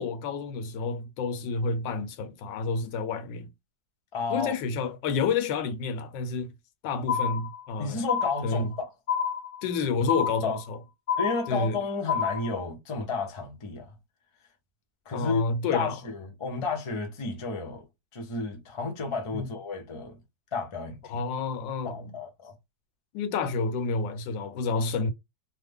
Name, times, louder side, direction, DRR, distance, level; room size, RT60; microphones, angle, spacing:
voice 1, 0.0-3.5 4.3-6.5 6.8-8.0 8.4-8.7 9.6-10.8 11.5-11.8 15.1-16.0 19.3-19.5 21.1-22.1 23.1-25.1, left 4 dB, 85° left, 1.3 m, -29 dB
voice 2, 4.1-4.5 7.8-8.9 10.4-10.6 11.2-13.9 15.1-15.4 15.7-17.8 18.1-20.2 20.5-21.2 21.8-22.5, left 4 dB, 45° left, 0.3 m, -32 dB
sound 1, 7.1-7.7 8.1-8.7 9.1-9.7 10.1-10.7 11.1-11.7 12.1-12.6, left 7 dB, 60° left, 0.7 m, -28 dB
3.2 x 2.1 x 3.4 m
omnidirectional pair, 2.0 m